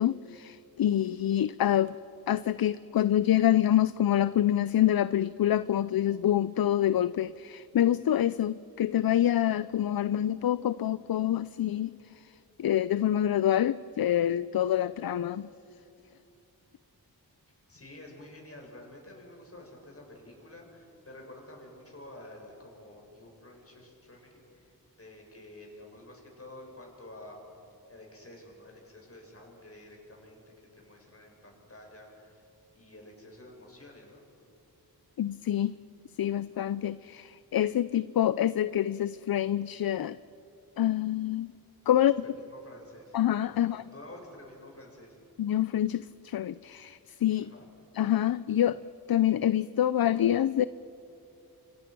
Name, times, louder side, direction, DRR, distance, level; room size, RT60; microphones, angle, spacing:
voice 1, 0.0-2.0 2.3-12.3 12.6-15.5 35.2-35.8 36.2-40.2 40.8-41.5 41.9-42.2 43.1-43.8 45.4-47.5 47.9-48.8 49.1-50.7, left 11 dB, 65° left, 16 dB, 0.5 m, -26 dB
voice 2, 17.7-27.4 27.9-30.4 30.7-32.4 32.7-34.2 42.2-43.2 43.5-45.2 47.4-47.7, left 1 dB, 35° left, 0 dB, 6.9 m, -50 dB
29.0 x 25.0 x 6.1 m, 2.8 s
wide cardioid pair, 65°, 38 cm